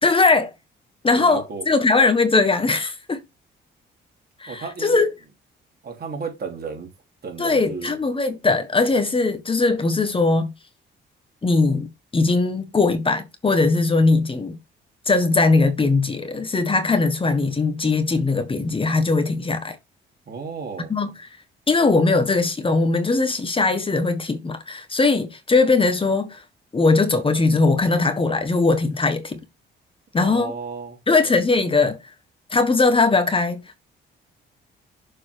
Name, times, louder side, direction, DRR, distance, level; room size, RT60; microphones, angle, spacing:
voice 1, 0.0-0.5 1.0-3.2 4.4-5.1 7.4-10.5 11.4-14.6 15.1-19.8 20.9-21.1 21.7-26.4 26.7-29.4 30.1-30.5 31.1-32.0 32.5-33.8, left 3 dB, 25° left, 1.4 m, -20 dB
voice 2, 1.1-1.6 4.5-5.1 5.8-6.9 7.2-8.0 20.2-20.9 30.1-31.0, right 5 dB, 50° right, 3.2 m, -33 dB
6.9 x 4.1 x 4.6 m
cardioid pair, 90°, 20 cm